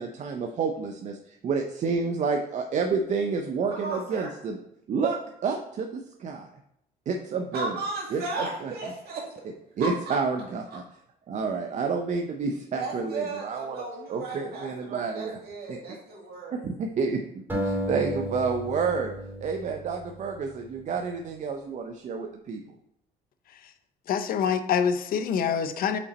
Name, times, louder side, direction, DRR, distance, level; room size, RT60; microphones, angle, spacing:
voice 1, 0.0-4.6 4.9-6.5 7.1-7.8 8.1-8.7 9.8-10.8 11.3-15.4 15.7-16.0 16.5-19.1 19.4-22.6, right 5 dB, 45° right, 4 dB, 0.6 m, -29 dB
voice 2, 3.7-4.3 7.5-9.3 9.8-10.2 12.7-16.6, right 3 dB, 65° right, -1 dB, 2.1 m, -35 dB
sound 1, 17.5-20.7, equal, 10° right, 2.6 m, -33 dB
voice 3, 24.1-26.0, left 7 dB, 60° left, 9 dB, 0.6 m, -25 dB
5.5 x 5.2 x 4.1 m, 0.77 s
cardioid pair, 110°, 17 cm